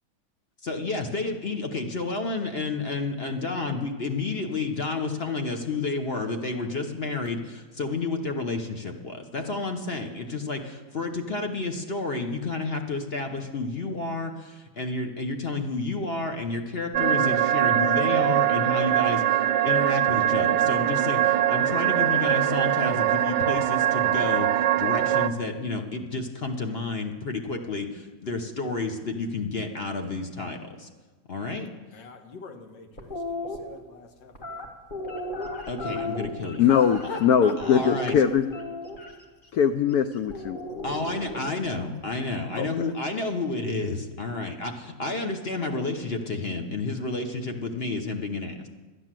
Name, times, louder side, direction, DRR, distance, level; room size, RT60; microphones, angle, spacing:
voice 1, 0.6-30.9 31.3-31.7 35.7-36.6 37.6-38.1 40.8-48.7, left 3 dB, 45° left, 5 dB, 0.8 m, -30 dB
sound 1, 16.9-25.3, right 11 dB, 70° right, 1.1 m, -22 dB
voice 2, 31.9-34.7 36.6-36.7 37.0-37.5, left 3 dB, 70° left, 4 dB, 2.0 m, -42 dB
sound 2, 33.0-33.6 34.3-37.3 37.6-39.1 40.3-41.7, left 2 dB, 30° left, 1.3 m, -34 dB
voice 3, 36.6-38.4 39.5-40.6 42.6-42.7, left 8 dB, 90° left, 10 dB, 0.8 m, -21 dB
11.5 x 10.0 x 7.5 m, 1.3 s
omnidirectional pair, 2.2 m